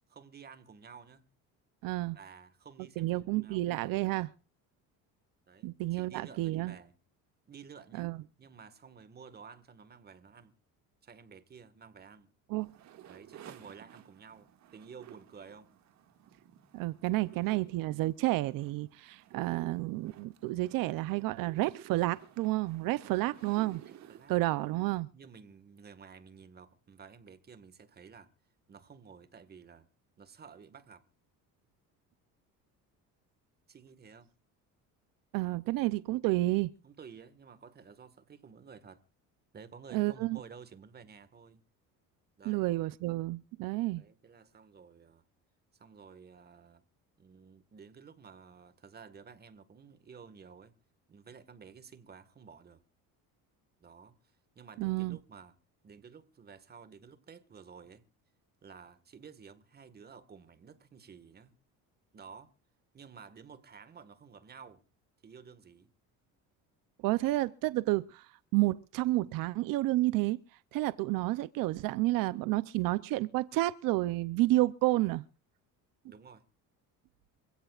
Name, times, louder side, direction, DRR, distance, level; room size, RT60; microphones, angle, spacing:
voice 1, 0.1-1.3 2.1-3.7 5.5-7.0 7.5-8.1 8.4-10.5 11.0-12.3 13.1-15.7 17.3-17.8 23.0-23.4 23.8-24.4 25.1-28.3 28.7-29.9 30.2-31.0 33.7-34.3 36.8-39.0 39.5-41.6 42.4-42.7 44.0-45.2 45.7-46.8 47.2-50.7 51.1-52.8 53.8-55.6 55.8-58.0 58.6-61.5 62.1-62.5 62.9-64.8 65.2-65.9 76.1-76.4, right 6 dB, 30° right, 1.7 m, -53 dB
voice 2, 1.8-2.2 3.0-4.3 5.6-6.7 8.0-8.2 12.5-12.7 16.7-23.8 24.3-25.1 35.3-36.7 39.9-40.4 42.5-44.0 54.8-55.2 67.0-68.3 68.5-70.4 70.7-75.2, right 18 dB, 75° right, 0.7 m, -30 dB
sound 1, 12.6-24.8, right 11 dB, 55° right, 2.1 m, -54 dB
26.5 x 16.5 x 2.5 m
cardioid pair, 135°, 34 cm